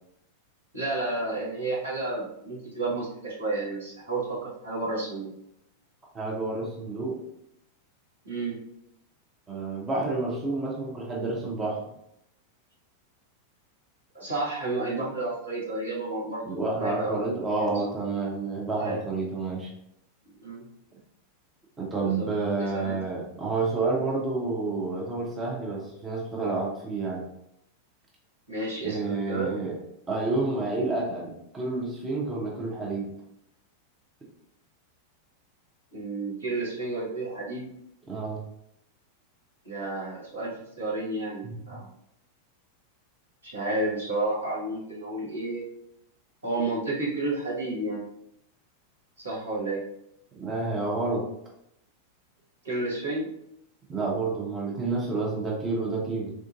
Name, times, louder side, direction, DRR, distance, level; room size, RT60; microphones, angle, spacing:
voice 1, 0.7-5.3 8.2-8.6 14.1-17.3 17.6-17.7 18.8-19.0 20.4-20.7 22.0-22.3 22.6-23.0 28.5-29.5 35.9-37.7 39.6-41.9 43.4-45.6 46.4-48.0 49.2-49.8 52.6-53.3, right 2 dB, 75° right, -6 dB, 1.2 m, -31 dB
voice 2, 6.1-7.2 9.5-11.9 16.4-19.7 21.8-27.2 28.8-29.7 30.1-33.1 38.1-38.4 41.4-41.8 50.3-51.2 53.9-56.3, right 3 dB, 20° right, -3 dB, 0.7 m, -29 dB
3.5 x 2.5 x 2.5 m, 0.77 s
figure-of-eight pair, 90°, 0 cm